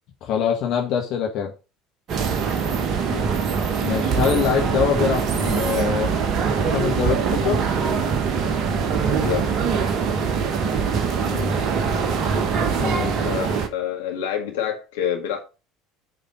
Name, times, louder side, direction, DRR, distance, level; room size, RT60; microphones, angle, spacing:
voice 1, 0.2-1.5 3.8-6.1 6.7-7.6 11.3-11.6 12.7-13.1, left 8 dB, 50° left, 1.7 m, -24 dB
sound 1, 2.1-13.7, right 6 dB, 45° right, 1.3 m, -23 dB
voice 2, 9.1-9.6 13.2-15.4, left 9 dB, 65° left, 2.0 m, -27 dB
8.1 x 5.0 x 5.2 m
figure-of-eight pair, 65°, 0 cm